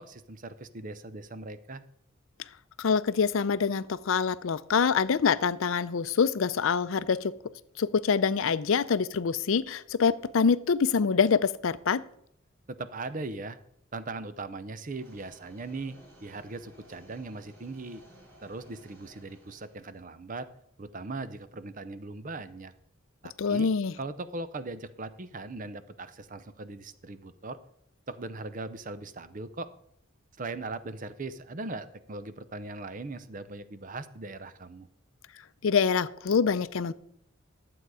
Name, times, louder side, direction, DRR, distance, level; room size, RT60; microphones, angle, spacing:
voice 1, 0.0-1.8 12.7-13.6 13.9-18.0 18.4-20.5 20.8-22.7 23.2-23.7 24.0-27.6 28.1-29.7 30.4-34.9, right 3 dB, 40° right, 13 dB, 0.6 m, -39 dB
voice 2, 2.8-7.3 7.8-12.0 23.4-23.9 35.6-36.9, left 6 dB, 75° left, 15 dB, 0.5 m, -25 dB
sound 1, 14.8-20.0, right 1 dB, 70° right, 5.4 m, -56 dB
12.0 x 7.8 x 4.8 m, 0.72 s
head